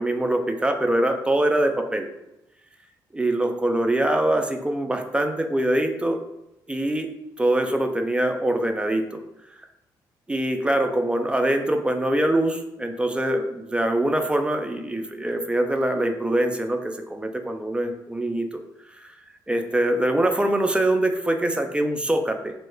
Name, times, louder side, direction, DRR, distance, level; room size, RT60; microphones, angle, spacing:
voice 1, 0.0-2.1 3.1-6.2 6.7-7.1 7.4-9.2 10.3-18.5 18.9-19.1 19.5-22.5, right 1 dB, 10° right, 5 dB, 0.4 m, -23 dB
2.2 x 2.1 x 3.2 m, 0.92 s
hypercardioid pair, 50°, 9 cm